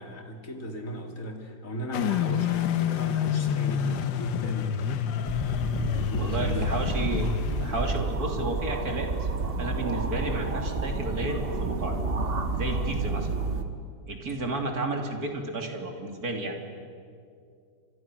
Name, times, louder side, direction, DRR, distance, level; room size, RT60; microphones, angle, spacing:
voice 1, 0.0-4.7 5.9-6.6 7.9-8.1, right 1 dB, 45° left, 3 dB, 3.1 m, -37 dB
sound 1, 1.9-8.0, left 9 dB, 80° left, 1.7 m, -28 dB
sound 2, 5.3-13.6, right 3 dB, 35° right, 1.5 m, -30 dB
voice 2, 6.2-7.3 7.6-9.3 9.6-12.0 12.5-13.4 14.1-16.8, right 2 dB, 55° right, 2 dB, 3.3 m, -32 dB
30.0 x 26.0 x 6.3 m, 2.3 s
omnidirectional pair, 2.0 m